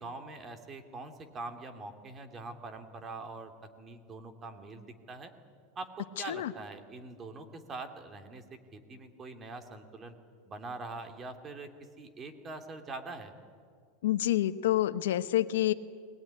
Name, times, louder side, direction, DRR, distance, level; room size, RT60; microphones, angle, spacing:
voice 1, 0.0-3.5 3.8-5.3 5.8-10.1 10.4-11.7 12.0-13.3, right 3 dB, 25° right, 7 dB, 2.5 m, -43 dB
voice 2, 14.0-15.7, left 13 dB, 85° left, 12 dB, 0.9 m, -28 dB
20.5 x 19.5 x 10.0 m, 2.1 s
supercardioid pair, 130°, 0 cm